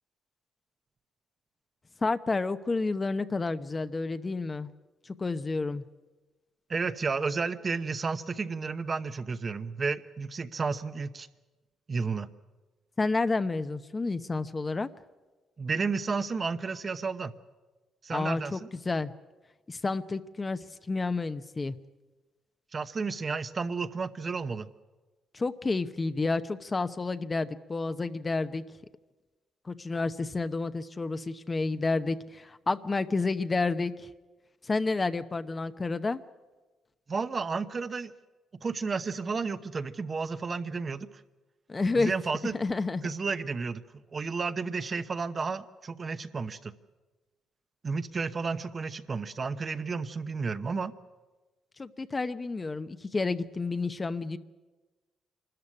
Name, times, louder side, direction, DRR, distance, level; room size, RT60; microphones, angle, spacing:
voice 1, 2.0-4.7 5.0-5.8 13.0-14.9 18.1-18.6 18.8-19.1 19.7-21.8 25.3-28.6 29.6-34.1 34.6-36.2 41.7-42.1 42.5-43.1 51.8-54.4, left 3 dB, 25° left, 11 dB, 0.8 m, -30 dB
voice 2, 6.7-11.3 11.9-12.3 15.6-17.3 18.0-18.7 22.7-24.7 37.1-38.1 38.6-41.1 41.9-42.5 43.0-43.8 44.1-46.7 47.8-50.9, right 4 dB, 35° right, 10 dB, 0.9 m, -32 dB
25.0 x 13.5 x 9.9 m, 1.2 s
cardioid pair, 90°, 0 cm